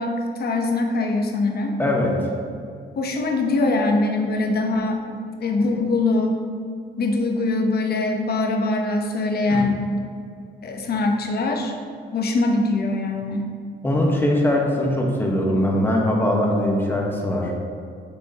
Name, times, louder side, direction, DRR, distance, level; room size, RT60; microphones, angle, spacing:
voice 1, 0.0-1.8 3.0-5.0 5.4-6.4 7.0-9.8 10.6-11.8 12.1-13.5, left 2 dB, 55° left, 3 dB, 1.0 m, -22 dB
voice 2, 1.8-2.3 9.5-9.6 13.8-17.5, left 1 dB, 10° left, -1 dB, 1.3 m, -21 dB
7.1 x 6.3 x 2.9 m, 2.4 s
cardioid pair, 90°, 20 cm